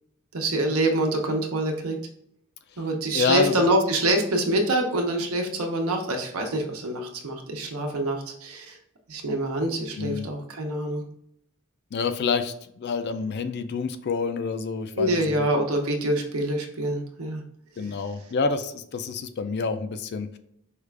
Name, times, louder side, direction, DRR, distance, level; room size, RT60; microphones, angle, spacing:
voice 1, 0.3-2.0 2.8-8.8 9.1-11.0 15.0-17.4 17.8-17.9, right 1 dB, 75° right, 3 dB, 0.8 m, -25 dB
voice 2, 3.1-3.5 10.0-10.3 11.9-15.5 17.8-20.4, left 4 dB, 50° left, 10 dB, 0.4 m, -28 dB
4.8 x 2.4 x 3.3 m, 0.72 s
head